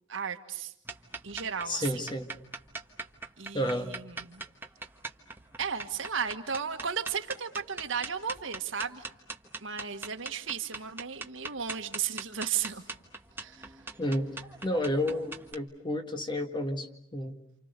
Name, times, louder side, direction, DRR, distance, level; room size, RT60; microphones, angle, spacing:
voice 1, 0.1-0.7 1.2-2.1 3.4-4.4 5.6-9.0 9.6-12.8 13.4-13.7, right 7 dB, 75° right, 6 dB, 1.7 m, -35 dB
sound 1, 0.8-15.5, right 3 dB, 10° right, 1.4 m, -42 dB
voice 2, 1.7-2.3 3.5-3.9 14.0-14.3 14.6-17.3, left 1 dB, 25° left, 5 dB, 1.8 m, -31 dB
29.0 x 28.0 x 6.8 m, 0.76 s
head